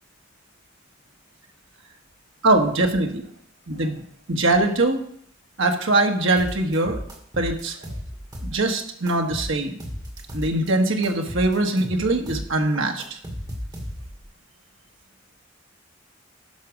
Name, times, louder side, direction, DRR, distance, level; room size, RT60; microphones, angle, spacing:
voice 1, 2.4-3.2 3.7-4.0 4.3-5.0 5.6-7.0 7.4-7.8 8.4-9.8 10.3-13.2, right 2 dB, 70° right, 3 dB, 1.5 m, -22 dB
sound 1, 6.4-8.7 9.1-10.7 11.0-14.2, equal, 20° right, 1.9 m, -35 dB
11.5 x 6.0 x 5.1 m, 0.66 s
head